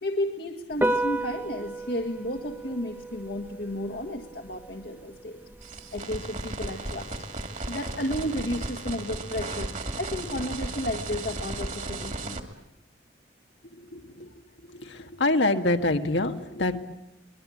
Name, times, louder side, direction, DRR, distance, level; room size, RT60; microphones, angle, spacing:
voice 1, 0.0-5.4 5.6-7.1 7.7-9.7 10.0-12.4, left 1 dB, 65° left, 3 dB, 1.7 m, -33 dB
Piano, 0.7-8.7, right 1 dB, 10° right, 0.9 m, -35 dB
sound 1, 5.6-12.4, right 2 dB, 45° right, 2.3 m, -35 dB
voice 2, 13.9-14.3 15.2-16.8, left 2 dB, 85° left, 6 dB, 1.8 m, -25 dB
24.5 x 21.5 x 8.6 m, 0.87 s
head